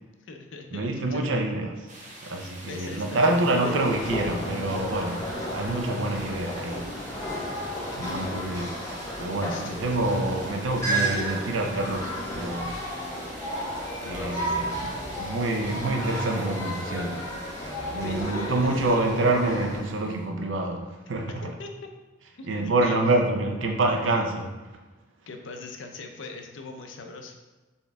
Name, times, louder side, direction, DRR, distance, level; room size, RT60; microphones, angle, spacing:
voice 1, 0.2-1.4 2.4-3.8 7.8-8.5 9.5-10.0 14.0-14.6 17.9-19.1 21.3-21.4 21.6-21.7 22.4-23.0 24.0-24.3 25.3-27.4, left 3 dB, 70° left, 4 dB, 0.5 m, -42 dB
voice 2, 0.7-1.8 2.2-6.9 8.0-8.7 9.2-12.8 14.0-17.3 17.9-21.4 22.5-24.4, right 2 dB, 75° right, 3 dB, 0.6 m, -27 dB
sound 1, 1.9-20.2, right 1 dB, 40° right, 0.9 m, -46 dB
sound 2, 3.6-19.8, equal, 15° left, 0.8 m, -33 dB
4.4 x 3.5 x 3.4 m, 1.2 s
head